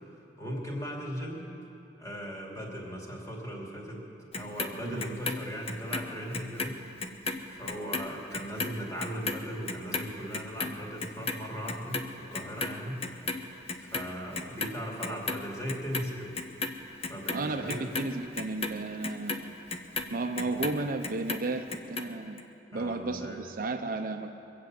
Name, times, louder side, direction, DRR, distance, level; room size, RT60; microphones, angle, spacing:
voice 1, 0.4-1.5 2.0-6.8 7.5-13.0 13.8-16.3 16.9-17.9 20.4-20.6 22.7-23.4, equal, 20° left, -2 dB, 2.7 m, -38 dB
Clock, 4.3-6.7 7.0-13.4 13.7-14.7 15.0-16.0 16.3-20.8 21.0-22.0 22.4-22.5, left 3 dB, 35° left, 0.8 m, -34 dB
voice 2, 17.3-19.5 20.1-22.4 22.7-24.3, right 2 dB, 50° right, 6 dB, 0.7 m, -33 dB
23.0 x 8.2 x 7.7 m, 2.9 s
head